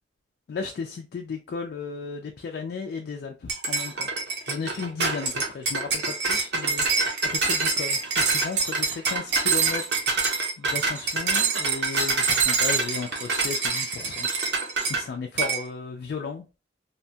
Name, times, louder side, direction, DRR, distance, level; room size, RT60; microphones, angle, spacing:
voice 1, 0.5-4.1 4.4-6.9 7.2-14.3 14.9-16.5, left 5 dB, 60° left, 0.3 m, -35 dB
sound 1, 3.5-15.0 15.4-15.6, right 4 dB, 65° right, 0.7 m, -25 dB
2.7 x 2.2 x 2.6 m
head